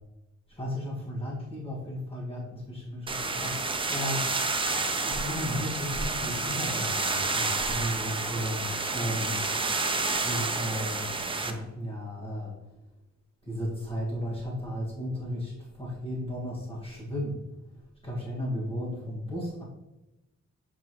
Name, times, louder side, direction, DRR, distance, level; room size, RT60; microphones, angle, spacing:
voice 1, 0.5-4.3 5.0-9.5 10.2-11.1 11.4-12.5 13.5-17.4 18.0-19.6, equal, 20° left, -4 dB, 1.7 m, -34 dB
sound 1, 3.1-11.5, right 3 dB, 20° right, 0.5 m, -30 dB
7.1 x 4.6 x 3.0 m, 0.99 s
wide cardioid pair, 155°, 29 cm